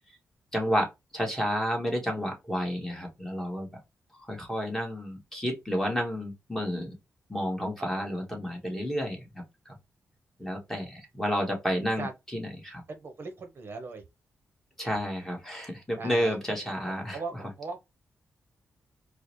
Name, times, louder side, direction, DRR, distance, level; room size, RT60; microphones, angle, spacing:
voice 1, 0.5-3.7 4.3-6.9 7.3-9.7 10.4-12.1 12.3-12.8 14.8-17.2, equal, 5° left, 1.4 m, -31 dB
voice 2, 12.9-14.0 16.0-16.4 17.1-17.8, right 3 dB, 50° right, 0.7 m, -38 dB
4.6 x 2.1 x 3.0 m
cardioid pair, 105°, 5 cm